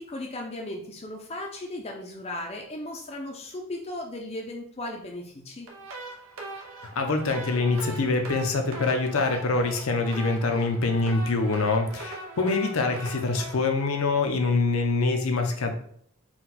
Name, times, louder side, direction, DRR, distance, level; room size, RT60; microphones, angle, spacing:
voice 1, 0.0-5.7, left 1 dB, 30° left, 0 dB, 0.5 m, -36 dB
sound 1, 5.7-14.8, right 2 dB, 75° right, 0.8 m, -41 dB
voice 2, 7.0-15.7, left 3 dB, 80° left, 5 dB, 0.6 m, -25 dB
4.3 x 2.3 x 4.1 m, 0.63 s
head